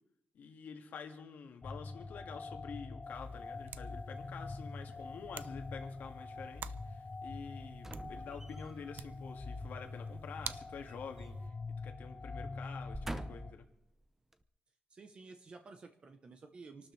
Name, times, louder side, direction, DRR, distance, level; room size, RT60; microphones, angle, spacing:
voice 1, 0.3-11.5 11.8-13.7, left 6 dB, 75° left, 4 dB, 2.0 m, -48 dB
sound 1, 1.6-13.5, left 3 dB, 25° left, 0.7 m, -45 dB
sound 2, 3.0-11.5, right 9 dB, 80° right, 0.5 m, -51 dB
sound 3, 7.8-8.9 10.5-11.6 11.9-12.1 12.7-13.7 14.3-14.4, right 1 dB, 10° right, 0.7 m, -46 dB
voice 2, 14.9-16.9, right 4 dB, 35° right, 6 dB, 0.9 m, -53 dB
27.0 x 12.5 x 3.3 m, 0.78 s
wide cardioid pair, 170°, 3 cm